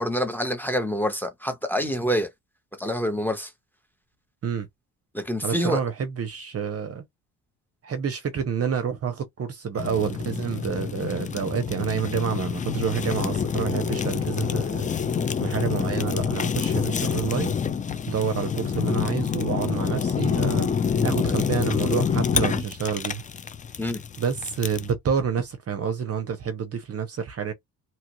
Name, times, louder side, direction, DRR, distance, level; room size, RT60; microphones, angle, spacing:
voice 1, 0.0-2.3 2.8-3.5 5.1-5.8 23.8-24.0, equal, 5° left, 0.9 m, -26 dB
voice 2, 5.4-7.0 7.8-14.9 15.4-17.6 18.1-23.2 24.2-27.5, right 7 dB, 35° right, 0.7 m, -28 dB
Fire, 9.8-24.9, left 7 dB, 20° left, 0.4 m, -27 dB
3.0 x 2.4 x 3.0 m
cardioid pair, 105°, 40 cm